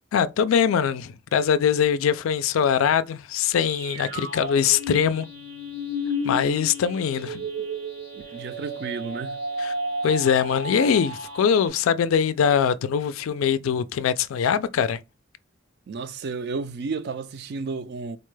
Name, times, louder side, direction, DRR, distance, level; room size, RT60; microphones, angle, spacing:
voice 1, 0.1-5.3 6.2-7.5 9.6-9.7 10.0-15.0, left 7 dB, 80° left, 0.3 m, -22 dB
sound 1, 3.6-11.7, equal, 75° right, 1.1 m, -32 dB
voice 2, 8.1-9.4 15.9-18.2, right 4 dB, 55° right, 0.3 m, -32 dB
4.0 x 2.2 x 3.1 m
head